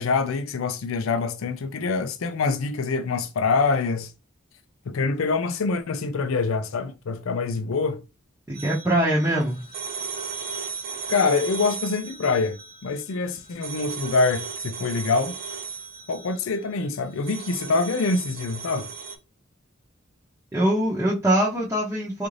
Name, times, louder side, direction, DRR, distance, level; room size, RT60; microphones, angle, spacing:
voice 1, 0.0-4.1 4.9-8.0 11.1-15.4 16.1-18.9, left 4 dB, 75° left, 0.4 m, -25 dB
voice 2, 8.5-9.6 20.5-22.3, right 1 dB, 10° right, 0.7 m, -23 dB
too stoned to bother with d phone ringing, 8.5-19.2, right 5 dB, 45° right, 0.6 m, -36 dB
3.8 x 2.5 x 3.2 m
head